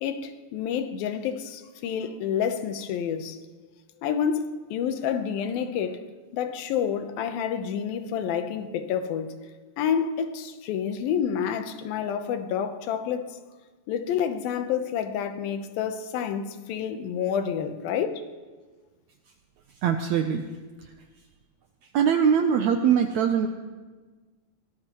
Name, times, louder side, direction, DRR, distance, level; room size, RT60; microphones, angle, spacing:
voice 1, 0.0-3.4 4.0-6.0 6.3-9.5 9.8-13.3 13.9-18.2, left 8 dB, 85° left, 2.7 m, -29 dB
voice 2, 19.8-20.4 21.9-23.5, right 7 dB, 80° right, 1.6 m, -22 dB
23.5 x 18.5 x 3.0 m
omnidirectional pair, 4.1 m